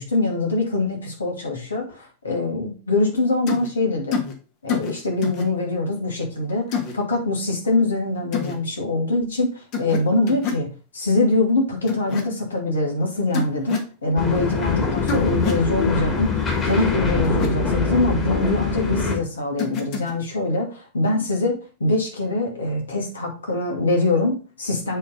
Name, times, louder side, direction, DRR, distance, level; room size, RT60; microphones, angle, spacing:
voice 1, 0.0-4.2 4.6-10.7 10.9-25.0, left 2 dB, 70° left, 1 dB, 2.5 m, -23 dB
sound 1, 3.5-3.7 4.1-4.3 4.7-4.9 5.2-5.5 6.7-6.9 8.3-8.5 9.7-10.0 10.3-10.6 11.9-12.2 13.3-13.9 15.1-15.6 17.2-17.5 19.6-20.1, left 5 dB, 40° left, 1.8 m, -26 dB
sound 2, 14.2-19.1, left 5 dB, 25° left, 2.7 m, -24 dB
8.2 x 4.0 x 5.3 m, 0.35 s
figure-of-eight pair, 90°, 0 cm